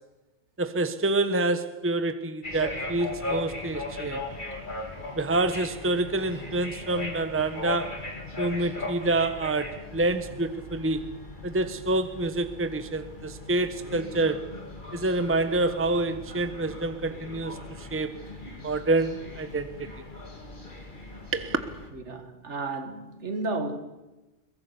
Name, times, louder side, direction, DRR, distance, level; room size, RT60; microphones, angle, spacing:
voice 1, 0.6-4.2 5.1-8.0 8.4-11.1 11.4-14.5 14.9-18.1 18.6-19.9 21.3-21.6, right 2 dB, 10° right, 1.0 m, -27 dB
sound 1, 2.4-21.9, left 2 dB, 40° left, 2.7 m, -39 dB
voice 2, 21.9-23.8, right 3 dB, 65° right, 1.9 m, -33 dB
22.5 x 21.0 x 7.0 m
omnidirectional pair, 1.3 m